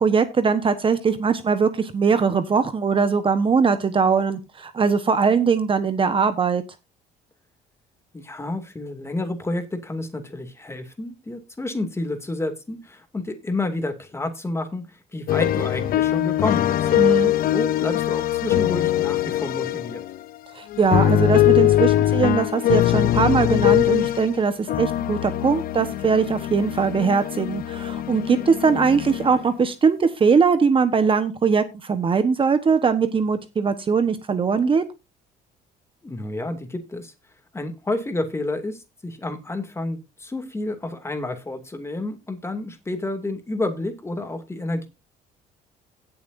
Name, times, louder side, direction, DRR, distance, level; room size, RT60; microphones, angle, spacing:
voice 1, 0.0-6.6 16.9-17.3 20.5-34.8, right 5 dB, 30° right, 10 dB, 1.2 m, -21 dB
voice 2, 8.1-16.9 17.5-20.0 36.0-37.1 37.5-44.9, left 2 dB, 15° left, 7 dB, 2.5 m, -30 dB
sound 1, 15.3-20.2 20.7-24.4 24.7-29.5, left 13 dB, 60° left, 0.7 m, -22 dB
17.0 x 7.0 x 2.7 m, 0.26 s
cardioid pair, 110°, 17 cm